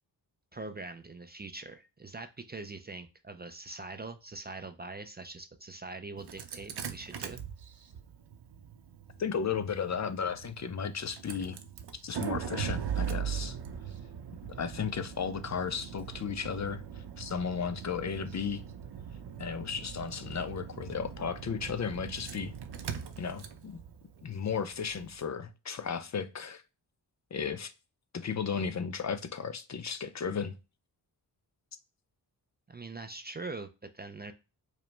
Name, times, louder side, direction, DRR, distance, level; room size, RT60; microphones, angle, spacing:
voice 1, 0.5-7.4 32.7-34.3, right 3 dB, 25° right, 0.4 m, -43 dB
Engine starting, 6.2-25.1, right 8 dB, 70° right, 0.7 m, -40 dB
voice 2, 9.2-11.6 12.0-13.6 14.6-18.6 19.4-22.5 23.2-23.8 24.2-26.6 27.3-27.7 28.1-30.5, left 6 dB, 40° left, 0.4 m, -34 dB
4.9 x 2.1 x 3.2 m
wide cardioid pair, 85°, 42 cm